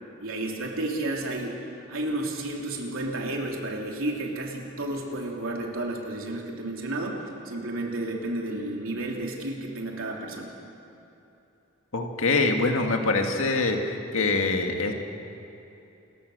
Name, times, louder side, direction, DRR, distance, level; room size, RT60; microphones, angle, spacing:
voice 1, 0.2-10.5, right 2 dB, 85° right, 0 dB, 3.2 m, -32 dB
voice 2, 11.9-13.8 14.1-14.9, left 3 dB, 90° left, 3 dB, 2.1 m, -24 dB
28.5 x 14.5 x 6.8 m, 2.9 s
head